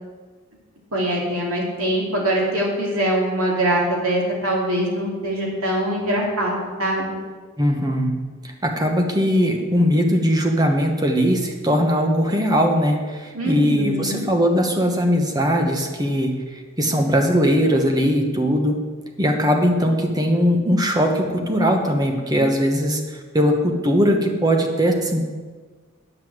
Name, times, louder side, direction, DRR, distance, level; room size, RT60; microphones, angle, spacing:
voice 1, 0.9-7.0 13.3-14.3, right 1 dB, 85° right, -2 dB, 2.7 m, -23 dB
voice 2, 7.6-8.1 8.6-16.3 16.8-18.8 19.2-23.0 23.3-25.2, equal, 20° right, 3 dB, 1.1 m, -20 dB
9.6 x 5.6 x 7.8 m, 1.4 s
head